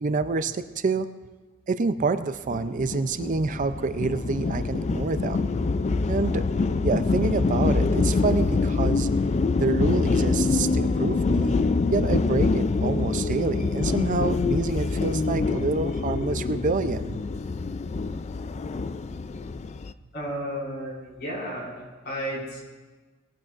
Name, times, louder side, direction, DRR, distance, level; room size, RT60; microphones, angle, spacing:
voice 1, 0.0-1.1 1.7-5.5 6.1-6.4 6.8-9.1 9.6-11.6 11.9-17.2, right 4 dB, 40° right, 11 dB, 0.4 m, -27 dB
sound 1, 2.5-19.9, left 3 dB, 30° left, 0.3 m, -25 dB
voice 2, 20.1-22.6, equal, 55° left, -4 dB, 5.2 m, -33 dB
20.0 x 15.0 x 2.5 m, 1.3 s
head